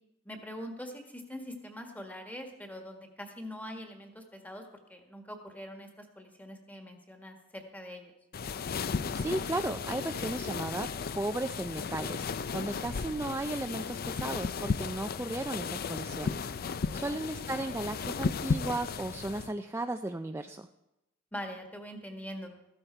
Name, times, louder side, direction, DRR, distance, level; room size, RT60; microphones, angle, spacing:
voice 1, 0.2-8.0 16.8-17.2 21.3-22.5, equal, 10° left, 4 dB, 1.6 m, -43 dB
sound 1, 8.3-19.5, left 5 dB, 50° left, 0.4 m, -35 dB
voice 2, 9.1-20.7, right 2 dB, 15° right, 6 dB, 0.4 m, -35 dB
14.5 x 12.5 x 4.5 m, 0.90 s
head